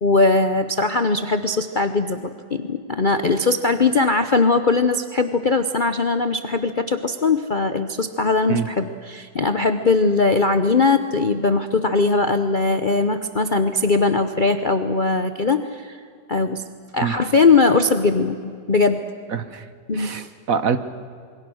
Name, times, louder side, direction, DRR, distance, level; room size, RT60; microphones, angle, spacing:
voice 1, 0.0-16.0 16.3-16.6 16.9-19.0 19.9-20.3, left 3 dB, 45° left, 8 dB, 0.7 m, -20 dB
voice 2, 19.3-19.6 19.9-20.2 20.5-20.8, right 6 dB, 55° right, 11 dB, 1.3 m, -23 dB
27.0 x 23.0 x 6.4 m, 2.3 s
omnidirectional pair, 1.9 m